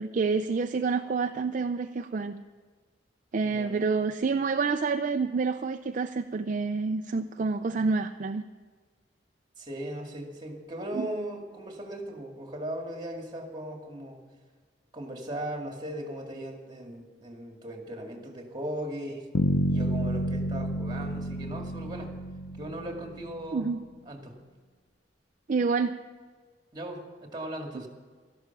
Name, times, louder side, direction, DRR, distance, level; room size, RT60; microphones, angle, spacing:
voice 1, 0.0-2.4 3.3-8.4 10.9-11.1 23.5-23.8 25.5-25.9, right 4 dB, 45° right, 7 dB, 0.4 m, -28 dB
voice 2, 3.4-3.8 9.6-14.2 14.9-19.3 19.7-22.1 22.6-23.7 24.1-24.3 26.7-27.9, right 1 dB, 25° right, 2 dB, 2.2 m, -38 dB
Bass guitar, 19.3-23.4, equal, 70° left, 0.7 m, -29 dB
13.0 x 11.5 x 5.9 m, 1.5 s
head